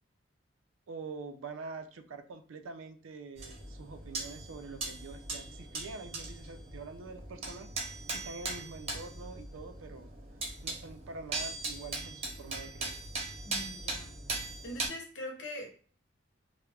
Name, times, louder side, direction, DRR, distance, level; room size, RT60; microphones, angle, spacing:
voice 1, 0.9-7.7 8.1-10.1 10.6-13.0, right 4 dB, 85° right, 0.4 m, -45 dB
sound 1, 3.4-14.9, right 2 dB, 30° right, 0.7 m, -40 dB
voice 2, 13.4-14.1 14.6-15.7, left 1 dB, 70° left, 0.7 m, -42 dB
2.3 x 2.1 x 3.3 m
head